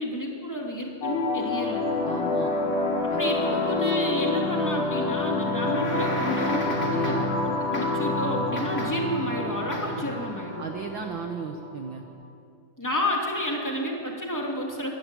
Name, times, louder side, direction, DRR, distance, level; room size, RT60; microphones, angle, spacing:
voice 1, 0.0-1.9 3.2-10.7 12.8-14.9, left 1 dB, 5° left, -1 dB, 2.3 m, -30 dB
sound 1, 1.0-12.0, left 3 dB, 75° left, 4.3 m, -28 dB
voice 2, 2.0-2.5 3.1-3.7 6.7-7.2 10.0-10.1 10.6-12.0, right 5 dB, 85° right, 5 dB, 1.0 m, -35 dB
Wind instrument woodwind instrument, 3.0-11.2, left 1 dB, 50° right, 6.3 m, -47 dB
sound 2, 5.5-7.4 7.7-8.2 8.6-9.2 9.7-10.1, left 1 dB, 25° left, 2.2 m, -35 dB
23.5 x 12.0 x 9.2 m, 2.5 s
omnidirectional pair, 3.8 m